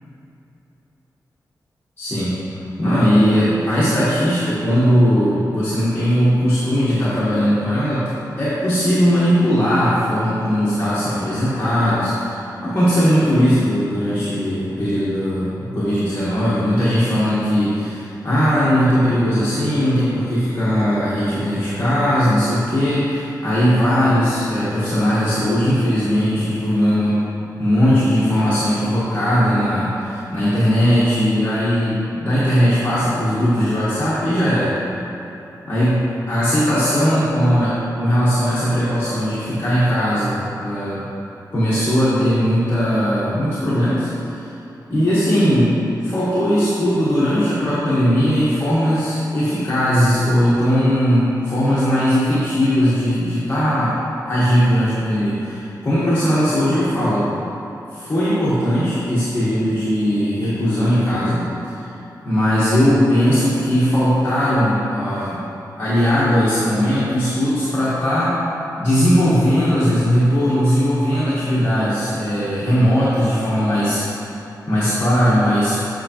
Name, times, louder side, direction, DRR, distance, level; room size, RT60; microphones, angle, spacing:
voice 1, 2.0-2.4 2.8-8.1 8.4-27.1 27.6-34.7 35.6-41.1 41.5-44.5 44.9-45.8 46.0-54.0 54.3-57.3 57.9-61.9 62.2-65.4 65.8-68.4 68.8-74.0 74.7-75.8, equal, 35° left, -11 dB, 1.3 m, -18 dB
7.9 x 5.5 x 3.0 m, 2.9 s
wide cardioid pair, 130°, 7 cm